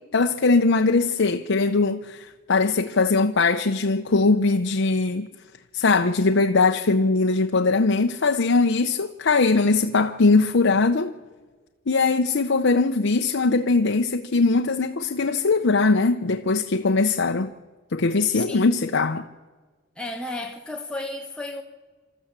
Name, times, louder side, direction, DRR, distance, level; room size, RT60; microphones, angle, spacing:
voice 1, 0.1-5.3 5.7-11.2 11.9-17.5 17.9-19.2, left 3 dB, 75° left, 0.7 m, -21 dB
voice 2, 18.3-18.7 20.0-21.6, left 2 dB, 5° left, 1.1 m, -33 dB
26.5 x 13.5 x 7.4 m
head